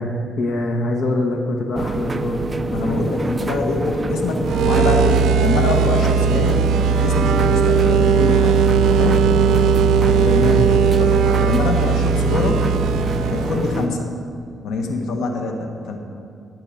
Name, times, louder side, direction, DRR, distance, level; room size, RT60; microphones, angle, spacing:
voice 1, 0.0-2.5 10.2-10.7, left 2 dB, 60° left, 1 dB, 1.2 m, -23 dB
sound 1, 1.8-13.9, right 2 dB, 20° right, 0.5 m, -25 dB
voice 2, 2.7-6.6 6.9-8.6 8.9-9.3 11.0-12.7 13.3-14.1 14.6-16.0, left 3 dB, 85° left, 2 dB, 1.5 m, -24 dB
sound 2, 4.4-13.9, right 6 dB, 85° right, 0.5 m, -18 dB
14.0 x 5.6 x 9.0 m, 2.5 s
cardioid pair, 135°, 0 cm